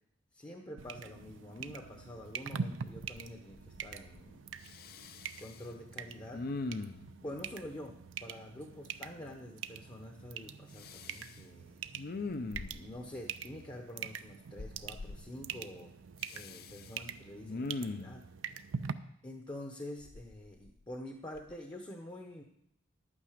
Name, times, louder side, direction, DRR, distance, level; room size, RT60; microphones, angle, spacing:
voice 1, 0.3-4.4 5.4-6.5 7.2-11.8 12.7-15.9 16.3-18.3 19.2-22.4, left 1 dB, 20° left, 3 dB, 0.8 m, -47 dB
sound 1, 0.8-18.9, right 7 dB, 75° right, 0.5 m, -44 dB
Respiratory sounds, 2.2-2.3 2.7-3.3 3.5-4.3 4.6-5.7 6.3-7.1 10.7-11.4 11.9-13.0 14.6-15.2 16.2-16.9 17.4-18.2 20.0-20.9 21.4-21.5, left 3 dB, 50° left, 0.5 m, -41 dB
11.5 x 8.7 x 5.0 m, 0.75 s
head